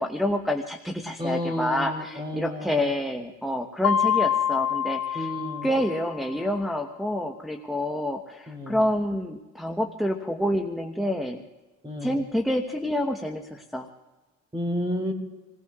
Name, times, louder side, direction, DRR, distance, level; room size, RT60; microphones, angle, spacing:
voice 1, 0.0-5.3 5.6-11.4 12.0-13.9, left 1 dB, ahead, 3 dB, 1.0 m, -28 dB
voice 2, 1.2-2.9 5.1-5.7 8.5-8.8 11.8-12.2 14.5-15.1, left 1 dB, 15° right, 3 dB, 4.0 m, -31 dB
Mallet percussion, 3.8-6.5, left 9 dB, 55° left, 0.9 m, -26 dB
28.0 x 18.0 x 2.4 m, 1.2 s
cardioid pair, 90°, 30 cm